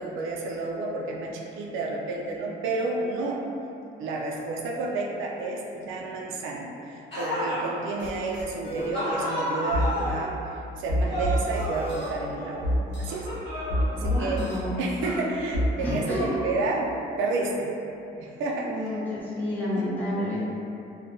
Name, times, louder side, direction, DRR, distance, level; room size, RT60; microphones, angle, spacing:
voice 1, 0.0-3.4 4.0-10.3 10.8-12.7 13.0-13.3 13.9-14.4 14.8-16.9 17.2-17.7 18.1-19.0 19.8-19.9, right 3 dB, 80° right, -1 dB, 0.4 m, -31 dB
sound 1, 7.1-7.7 8.9-10.3 11.1-12.6 13.1-14.8 15.7-16.8, equal, 30° left, 1.5 m, -32 dB
sound 2, 8.0-8.1 8.3-8.9 9.7-9.9 10.9-12.1 12.6-13.1 13.7-14.6 15.0-15.7, equal, 65° left, 0.7 m, -27 dB
voice 2, 14.0-14.8 15.8-16.3 18.6-20.6, left 1 dB, 10° left, -11 dB, 0.7 m, -30 dB
2.6 x 2.2 x 2.6 m, 2.8 s
cardioid pair, 90°, 20 cm